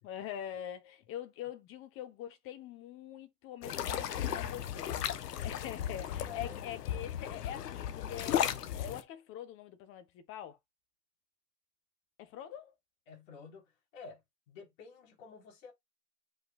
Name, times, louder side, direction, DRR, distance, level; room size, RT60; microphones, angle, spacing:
voice 1, 0.0-10.6 12.2-12.7, left 10 dB, 25° left, 1.3 m, -44 dB
sound 1, 3.6-9.0, left 10 dB, 70° left, 1.4 m, -35 dB
voice 2, 6.3-6.6 13.1-14.2 14.5-15.7, left 6 dB, 50° left, 5.2 m, -50 dB
8.7 x 5.5 x 2.6 m
hypercardioid pair, 145°, 49 cm